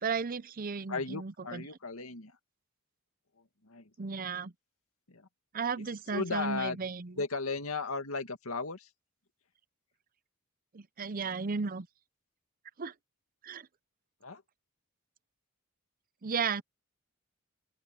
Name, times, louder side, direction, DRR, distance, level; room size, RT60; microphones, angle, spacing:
voice 1, 0.0-1.6 4.0-4.5 5.5-7.1 10.7-11.9 12.8-12.9 13.4-13.7 16.2-16.6, right 5 dB, 40° right, 0.6 m, -34 dB
voice 2, 0.9-2.4 3.4-3.9 5.1-5.3 5.8-5.9 6.1-6.9 7.2-8.9 14.2-14.4, left 4 dB, 80° left, 2.1 m, -36 dB
open air
head